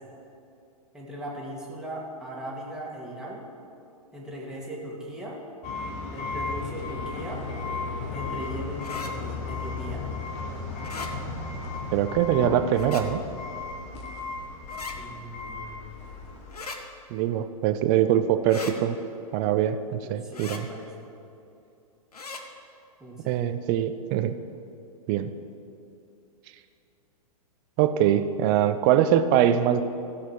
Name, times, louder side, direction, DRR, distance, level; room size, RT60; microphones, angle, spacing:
voice 1, 0.9-3.5 4.1-5.4 6.1-7.4 8.1-10.0 14.9-16.0 20.0-21.1 23.0-23.4, equal, 5° right, -5 dB, 2.4 m, -38 dB
sound 1, 5.6-16.5, left 4 dB, 35° left, 1.5 m, -35 dB
sound 2, 8.8-9.1 10.8-11.1 12.7-13.0 14.7-15.0 16.5-16.8 18.5-18.7 20.3-20.6 22.1-22.4, left 4 dB, 80° left, 1.1 m, -38 dB
voice 2, 11.9-13.2 17.1-19.0 19.3-20.7 23.3-24.3 25.1-25.3 27.8-29.8, right 10 dB, 35° right, 10 dB, 0.6 m, -23 dB
15.5 x 6.7 x 5.0 m, 2.7 s
figure-of-eight pair, 110°, 19 cm